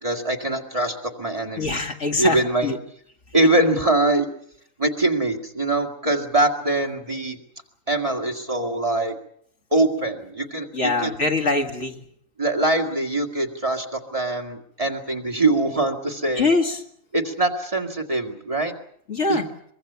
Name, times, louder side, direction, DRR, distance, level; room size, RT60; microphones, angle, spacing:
voice 1, 0.0-1.8 2.2-2.8 3.3-4.3 4.8-7.4 7.9-9.2 9.7-11.1 12.4-16.5 17.1-18.7 19.3-19.4, right 2 dB, 25° right, 4 dB, 2.1 m, -23 dB
voice 2, 1.6-2.8 10.7-11.9 16.4-16.8 19.1-19.5, left 3 dB, 60° left, 3 dB, 2.3 m, -23 dB
23.5 x 22.5 x 6.9 m, 0.69 s
omnidirectional pair, 1.4 m